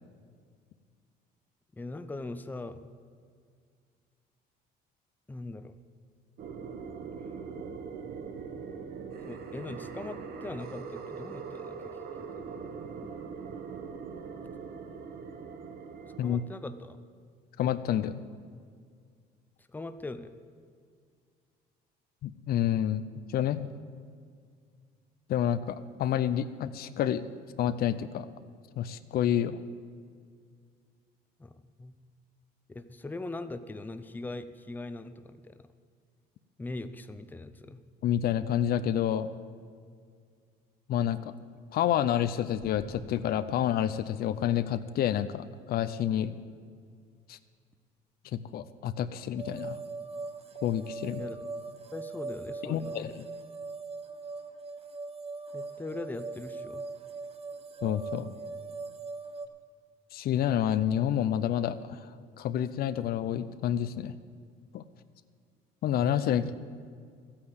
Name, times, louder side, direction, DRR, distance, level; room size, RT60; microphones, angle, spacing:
voice 1, 1.8-2.9 5.3-5.7 9.3-12.4 16.2-17.0 19.7-20.3 31.4-32.0 32.7-35.7 36.6-37.8 51.1-51.4 51.9-53.1 55.5-56.9 66.3-66.6, left 2 dB, 10° left, 10 dB, 0.6 m, -41 dB
sound 1, 6.4-16.4, right 5 dB, 65° right, 1.2 m, -41 dB
voice 2, 17.6-18.2 22.2-23.0 23.3-23.7 25.3-27.2 27.6-28.3 28.8-29.6 38.0-39.3 40.9-41.3 41.7-46.3 47.3-47.4 48.3-49.8 50.6-51.2 52.6-53.1 57.8-58.3 60.1-62.0 62.4-64.1 64.7-64.8 65.8-66.5, left 10 dB, 65° left, 13 dB, 0.6 m, -29 dB
sound 2, 42.6-44.5, left 2 dB, 80° left, 3.2 m, -50 dB
sound 3, 49.4-59.5, right 3 dB, 35° right, 1.0 m, -40 dB
13.5 x 8.8 x 8.0 m, 2.1 s
cardioid pair, 110°, 17 cm